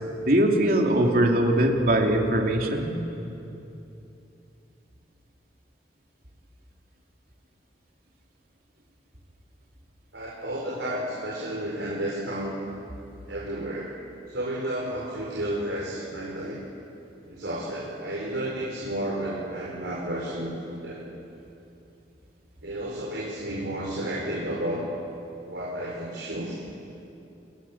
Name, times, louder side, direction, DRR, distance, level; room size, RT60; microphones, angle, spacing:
voice 1, 0.3-2.9, right 1 dB, 55° right, 1 dB, 2.9 m, -21 dB
voice 2, 10.1-12.5 13.3-13.9 14.3-16.6 17.3-21.0 22.6-24.9 25.5-26.6, right 1 dB, 85° right, -4 dB, 4.5 m, -32 dB
29.5 x 21.5 x 7.4 m, 2.8 s
head